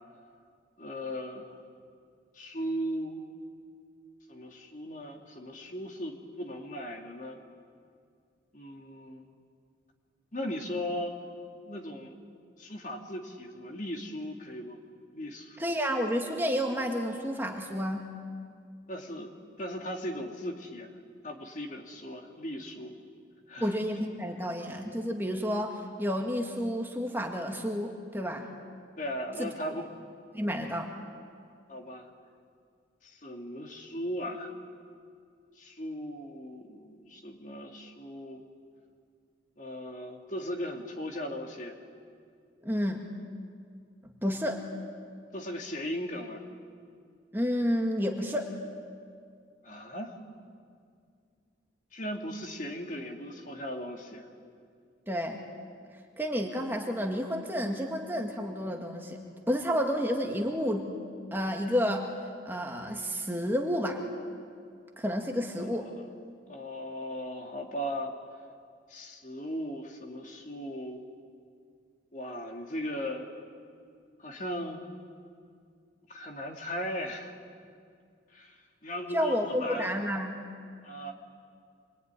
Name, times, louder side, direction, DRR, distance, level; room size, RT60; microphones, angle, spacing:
voice 1, 0.8-1.6 2.3-3.2 4.3-7.4 8.5-9.3 10.3-11.2 11.7-12.1 12.6-14.8 15.1-15.6 18.9-19.3 19.6-20.9 21.2-23.0 23.5-23.8 29.0-29.9 31.7-32.1 33.0-34.5 35.6-38.4 39.6-41.8 45.3-46.4 49.6-50.2 51.9-54.3 65.5-66.1 66.5-68.1 68.9-71.0 72.1-73.3 74.2-74.9 76.1-77.3 78.3-80.0 80.8-81.1, equal, 40° left, 2 dB, 2.7 m, -37 dB
voice 2, 15.6-18.1 23.6-28.5 29.4-29.5 30.3-30.9 42.6-43.0 44.2-44.6 47.3-48.5 55.1-55.4 56.2-59.2 59.5-60.9 61.3-62.1 62.5-64.0 65.0-65.9 79.1-80.4, equal, 10° right, 2 dB, 1.9 m, -30 dB
26.5 x 22.5 x 9.9 m, 2.2 s
head